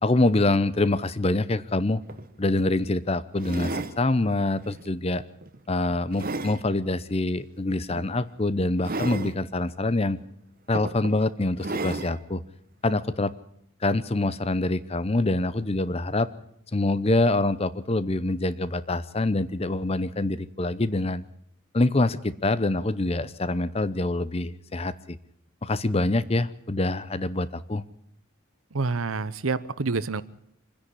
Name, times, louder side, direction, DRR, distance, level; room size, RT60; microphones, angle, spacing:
voice 1, 0.0-2.0 2.4-5.2 5.7-10.2 10.7-12.4 12.8-13.3 13.8-16.3 16.7-21.2 21.7-25.2 25.6-27.8, left 2 dB, 30° left, 16 dB, 0.7 m, -25 dB
sound 1, 1.7-1.8 2.1-2.3 3.4-4.0 4.6-4.9 5.4-6.6 7.9-8.1 8.8-9.4 10.2-10.3 10.7-11.2 11.6-12.2 12.9-13.0, right 2 dB, 45° right, 1.1 m, -33 dB
voice 2, 28.7-30.2, right 4 dB, 80° right, 16 dB, 0.9 m, -27 dB
25.5 x 10.5 x 10.0 m, 0.74 s
head